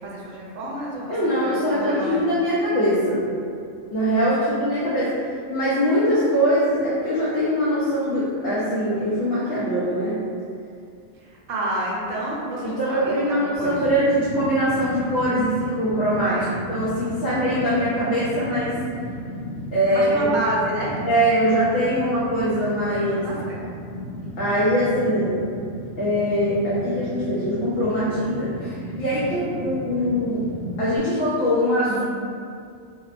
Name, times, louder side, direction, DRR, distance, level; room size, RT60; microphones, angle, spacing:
voice 1, 0.0-2.2 4.1-4.3 11.1-13.8 16.3-16.6 19.9-21.0 22.9-23.6, right 1 dB, 90° right, -4 dB, 1.0 m, -30 dB
voice 2, 1.1-3.4 3.9-10.2 12.6-16.4 16.7-18.8 19.7-20.3 21.0-23.3 24.4-25.4 26.0-30.4 30.8-32.0, equal, 60° left, -10 dB, 0.7 m, -22 dB
Fire, 13.5-31.0, equal, 80° left, 1.2 m, -34 dB
2.6 x 2.2 x 2.4 m, 2.4 s
omnidirectional pair, 1.3 m